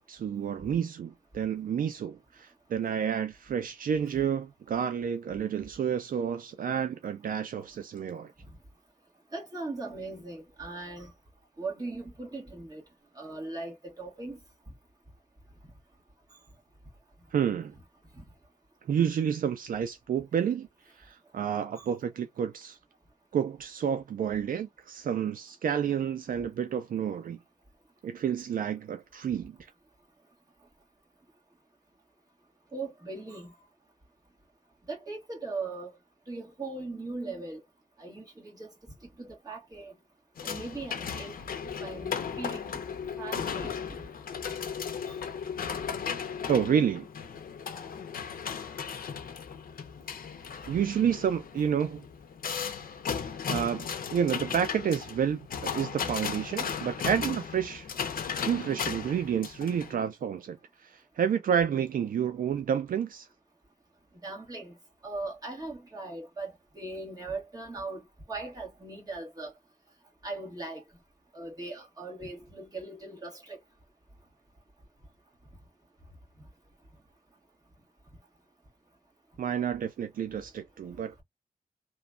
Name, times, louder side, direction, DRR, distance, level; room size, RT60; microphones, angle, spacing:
voice 1, 0.0-8.3 17.3-17.7 18.9-20.7 21.0-22.8 23.3-27.4 28.0-29.6 46.5-47.1 50.7-52.0 53.5-57.9 58.3-60.6 60.8-63.3 79.4-81.2, right 8 dB, 70° right, 0.4 m, -30 dB
voice 2, 9.3-11.1 11.6-12.8 13.1-14.4 21.8-21.9 32.7-33.5 34.9-36.0 36.3-37.6 38.0-38.7 39.2-39.9 40.4-42.8 43.2-43.7 45.1-45.2 64.2-64.8 65.0-68.0 68.3-69.5 70.2-70.8 71.3-73.6, right 3 dB, 25° right, 1.4 m, -39 dB
sound 1, 40.4-59.9, left 7 dB, 80° left, 0.5 m, -36 dB
3.0 x 2.2 x 2.4 m
wide cardioid pair, 120°, 15 cm